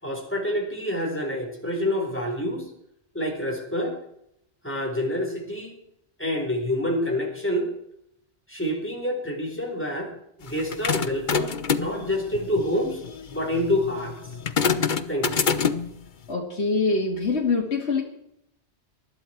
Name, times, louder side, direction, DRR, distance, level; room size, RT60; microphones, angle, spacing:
voice 1, 0.0-2.7 3.1-4.0 4.6-5.7 6.2-7.7 8.5-10.1 10.4-13.0 13.3-14.1 15.1-15.4, left 1 dB, 10° left, 0 dB, 4.4 m, -27 dB
sound 1, 10.5-16.0, left 6 dB, 45° left, 1.0 m, -27 dB
voice 2, 16.3-18.0, left 4 dB, 65° left, -1 dB, 2.4 m, -24 dB
20.5 x 13.0 x 4.5 m, 0.75 s
omnidirectional pair, 1.2 m